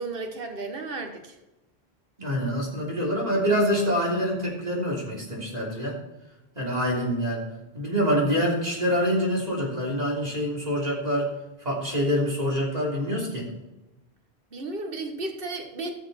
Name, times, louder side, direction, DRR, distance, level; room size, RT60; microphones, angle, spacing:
voice 1, 0.0-1.4 14.5-15.9, right 3 dB, 60° right, 4 dB, 1.6 m, -33 dB
voice 2, 2.2-6.0 6.5-7.4 7.7-11.3 11.6-13.5, equal, 40° right, -3 dB, 3.3 m, -26 dB
15.0 x 6.8 x 4.4 m, 1.0 s
omnidirectional pair, 1.1 m